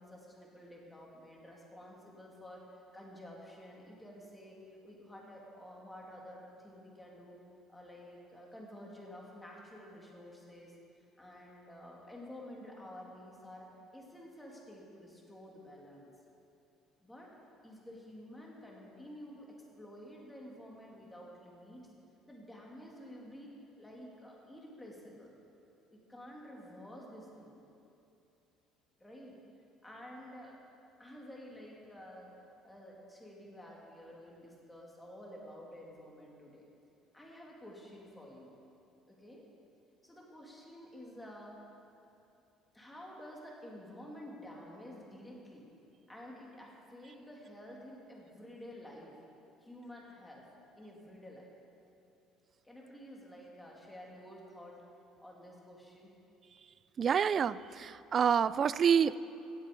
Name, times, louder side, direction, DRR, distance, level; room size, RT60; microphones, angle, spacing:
voice 1, 0.0-7.4 7.7-16.1 17.0-17.3 17.6-21.9 22.3-25.3 25.9-27.6 29.0-29.4 29.8-30.6 31.0-32.3 32.6-36.6 37.1-38.6 39.1-39.4 40.0-41.5 42.7-45.7 46.1-49.2 49.6-50.5 50.8-51.5 52.6-54.8 55.2-56.1, equal, 10° left, -3 dB, 2.8 m, -51 dB
voice 2, 57.0-59.2, right 7 dB, 40° right, 17 dB, 0.3 m, -27 dB
17.0 x 7.5 x 5.4 m, 2.8 s
supercardioid pair, 100°, 0 cm